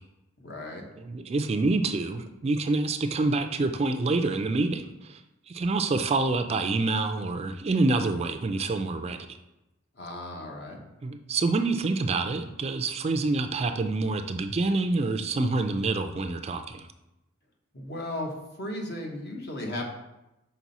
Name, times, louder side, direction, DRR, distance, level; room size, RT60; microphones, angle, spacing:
voice 1, 0.4-0.8 9.9-10.8 17.7-18.3 18.6-19.9, left 1 dB, 55° left, 1 dB, 1.1 m, -35 dB
voice 2, 1.0-5.2 5.5-9.3 11.0-16.9, right 3 dB, 30° right, 8 dB, 0.3 m, -27 dB
6.0 x 4.3 x 4.1 m, 0.94 s
head